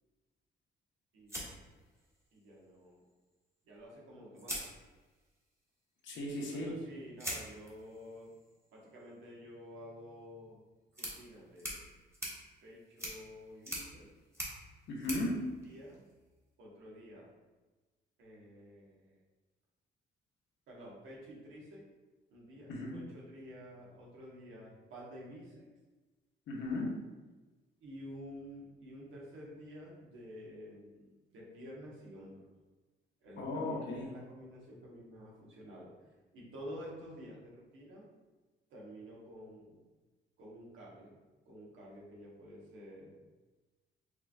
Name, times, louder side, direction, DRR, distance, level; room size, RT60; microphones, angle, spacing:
voice 1, 1.1-1.5 2.3-3.0 3.6-4.6 6.5-8.3 8.7-10.6 10.9-12.0 12.6-14.1 15.6-16.0 16.6-17.3 18.2-19.2 20.7-21.8 22.3-25.7 27.8-32.5 33.2-35.9 36.3-38.1 38.7-39.8 40.4-41.2 41.4-43.2, equal, 80° right, -4 dB, 1.2 m, -50 dB
sound 1, 1.3-2.4 3.8-3.9 4.4-5.4 7.2-16.4, equal, 15° right, 1.2 m, -45 dB
voice 2, 6.0-6.7 14.9-15.4 22.7-22.9 26.5-26.9 33.4-34.1, left 2 dB, 70° left, -2 dB, 1.0 m, -36 dB
4.7 x 3.0 x 2.3 m, 1.2 s
cardioid pair, 90°, 20 cm